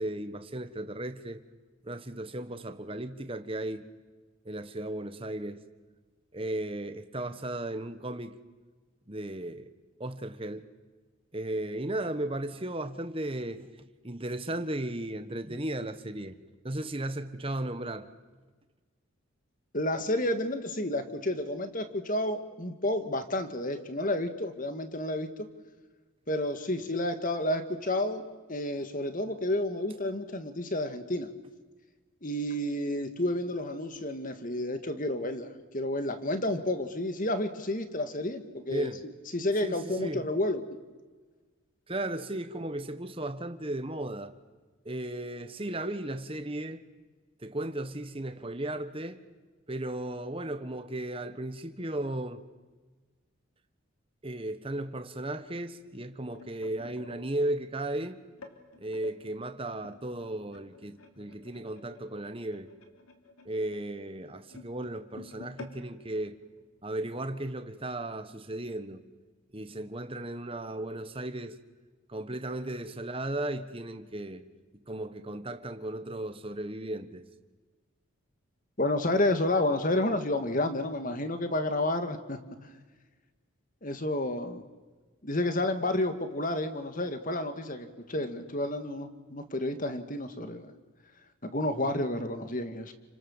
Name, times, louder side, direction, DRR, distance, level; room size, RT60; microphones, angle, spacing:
voice 1, 0.0-1.4 1.8-3.9 4.4-5.6 6.3-8.4 9.1-9.7 10.0-10.7 11.3-16.4 16.6-18.1 38.7-39.0 39.6-40.3 41.9-44.3 44.8-46.8 47.4-49.2 49.7-52.4 54.2-58.2 58.8-62.7 63.4-66.4 66.8-69.0 69.5-71.6 72.1-74.4 74.9-77.2, right 1 dB, 25° right, 1.3 m, -35 dB
voice 2, 19.7-25.3 26.3-28.2 28.5-31.3 32.2-38.9 39.3-40.6 78.8-82.4 83.8-84.6 85.2-90.8 91.4-92.9, left 1 dB, 40° left, 2.0 m, -30 dB
sound 1, 55.9-59.2 59.8-67.1 67.5-67.7 68.0-68.3 69.0-69.1, left 3 dB, 90° left, 3.2 m, -52 dB
30.0 x 25.5 x 7.3 m
head